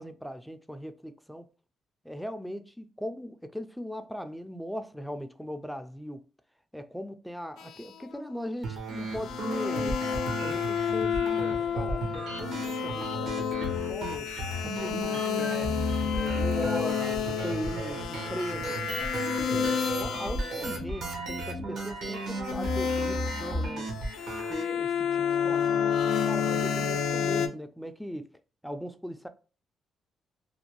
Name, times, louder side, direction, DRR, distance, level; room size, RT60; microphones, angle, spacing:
voice 1, 0.0-1.5 2.0-6.2 6.7-10.0 10.4-14.3 14.6-15.8 16.1-18.8 19.2-23.9 24.5-25.8 26.2-28.3 28.6-29.3, equal, ahead, 0.3 m, -39 dB
sound 1, 7.6-8.3 9.1-20.7 22.3-27.5, left 7 dB, 80° left, 0.4 m, -30 dB
sound 2, 8.6-24.6, right 2 dB, 65° right, 0.9 m, -35 dB
sound 3, 9.1-19.2, right 4 dB, 45° right, 0.6 m, -50 dB
2.5 x 2.2 x 3.0 m
cardioid pair, 90°, 0 cm